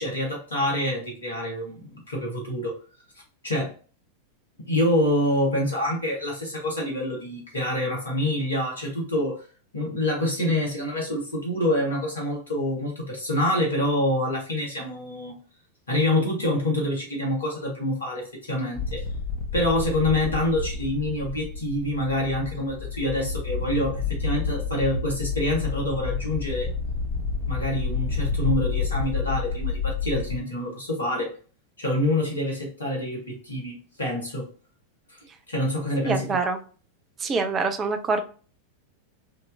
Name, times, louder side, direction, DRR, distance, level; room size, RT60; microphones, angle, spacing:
voice 1, 0.0-2.8 3.4-3.7 4.6-9.4 9.7-15.4 15.9-19.0 19.5-26.7 27.5-31.3 31.8-34.5 35.5-36.3, left 1 dB, 75° left, -2 dB, 1.6 m, -26 dB
sound 1, 18.8-30.4, left 5 dB, 25° left, 1.0 m, -29 dB
voice 2, 36.0-36.6 37.2-38.2, right 4 dB, 25° right, 7 dB, 0.6 m, -25 dB
4.6 x 2.8 x 2.6 m, 0.38 s
figure-of-eight pair, 90°, 0 cm